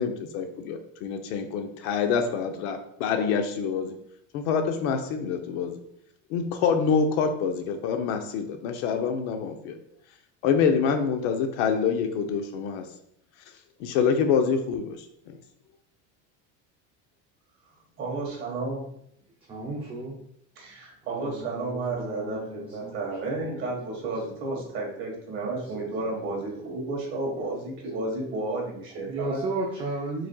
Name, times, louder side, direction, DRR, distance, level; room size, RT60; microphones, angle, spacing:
voice 1, 0.0-3.9 4.3-5.8 6.3-9.8 10.4-12.9 13.8-15.4, left 6 dB, 80° left, 6 dB, 0.8 m, -26 dB
voice 2, 18.0-18.9 20.5-29.4, right 2 dB, 35° right, -2 dB, 1.5 m, -32 dB
voice 3, 19.5-20.2 21.1-23.4 25.7-25.9 26.6-26.9 27.3-27.4 29.1-30.3, right 2 dB, 15° right, -3 dB, 0.4 m, -35 dB
4.8 x 4.2 x 2.3 m, 0.70 s
cardioid pair, 165°, 35 cm